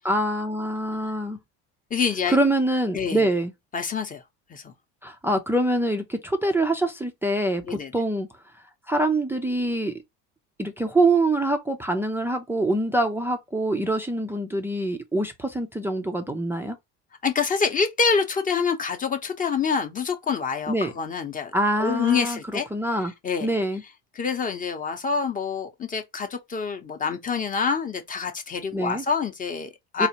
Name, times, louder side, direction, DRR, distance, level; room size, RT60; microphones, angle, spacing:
voice 1, 0.1-1.4 2.3-3.5 5.0-8.3 8.9-9.9 10.6-16.8 20.7-20.9 21.5-23.1 23.4-23.8 28.7-29.0 30.0-30.1, right 1 dB, 5° right, 0.4 m, -25 dB
voice 2, 1.9-2.4 2.9-3.3 3.7-4.2 4.5-4.7 7.7-7.9 17.2-21.5 21.8-22.7 23.2-23.5 24.2-30.1, left 5 dB, 25° left, 0.7 m, -26 dB
4.1 x 2.5 x 2.8 m
cardioid pair, 130°, 35 cm